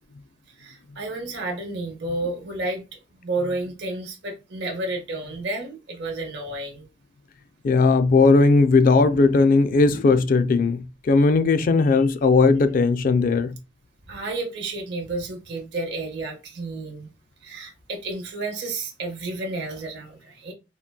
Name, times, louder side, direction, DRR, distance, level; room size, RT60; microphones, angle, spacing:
voice 1, 0.6-6.9 14.1-17.1 17.4-20.5, right 2 dB, 60° right, 0.8 m, -31 dB
voice 2, 7.6-13.6, left 3 dB, 45° left, 0.3 m, -18 dB
3.7 x 2.2 x 2.3 m
head